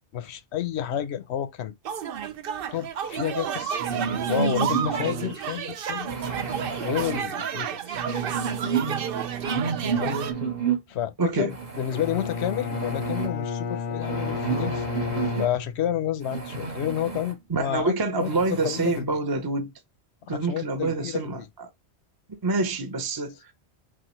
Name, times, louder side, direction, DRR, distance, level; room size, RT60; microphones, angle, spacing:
voice 1, 0.1-1.7 2.7-3.8 4.3-6.2 6.8-8.0 9.9-10.2 10.9-14.8 15.3-18.3 18.6-19.0 20.3-21.5, left 10 dB, 90° left, 0.9 m, -30 dB
sound 1, 1.9-10.3, right 8 dB, 65° right, 0.7 m, -31 dB
sound 2, 3.8-5.3 6.1-7.2 7.9-10.8 11.5-13.3 14.0-15.5 16.2-17.3 17.8-17.9 18.2-19.0, right 6 dB, 45° right, 1.1 m, -30 dB
voice 2, 11.2-11.5 17.5-19.7 20.3-21.4 22.4-23.5, right 3 dB, 25° right, 0.7 m, -26 dB
Bowed string instrument, 11.9-16.1, left 5 dB, 55° left, 0.5 m, -32 dB
6.1 x 2.3 x 3.1 m
omnidirectional pair, 1.1 m